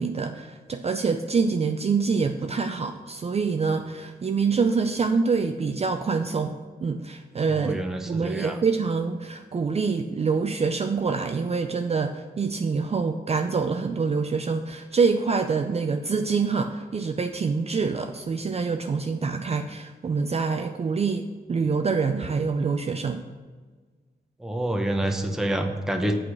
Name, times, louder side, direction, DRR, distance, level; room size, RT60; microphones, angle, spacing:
voice 1, 0.0-7.8 8.0-23.2, right 5 dB, 35° right, 6 dB, 0.4 m, -26 dB
voice 2, 7.5-8.6 24.4-26.1, right 1 dB, 5° right, 4 dB, 0.7 m, -27 dB
8.3 x 4.9 x 7.2 m, 1.4 s
wide cardioid pair, 155°, 17 cm